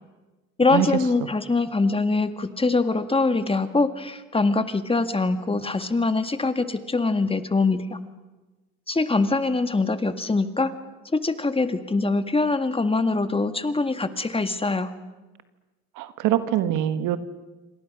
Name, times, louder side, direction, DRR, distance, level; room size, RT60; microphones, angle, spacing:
voice 1, 0.6-8.0 8.9-10.7 11.1-14.9, left 3 dB, 15° left, 9 dB, 1.9 m, -23 dB
voice 2, 16.0-17.2, right 12 dB, 75° right, 11 dB, 1.7 m, -23 dB
28.0 x 25.5 x 6.3 m, 1.1 s
supercardioid pair, 80°, 32 cm